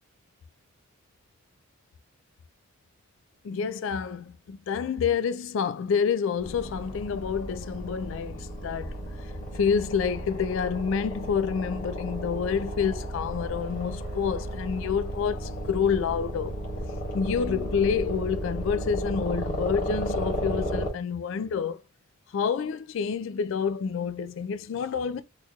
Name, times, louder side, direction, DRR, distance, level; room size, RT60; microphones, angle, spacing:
voice 1, 3.4-9.0 9.5-16.6 17.1-21.8 22.3-25.2, left 6 dB, 60° left, 0.3 m, -28 dB
sound 1, 6.4-20.9, equal, 35° left, 1.0 m, -34 dB
3.8 x 2.9 x 2.3 m
head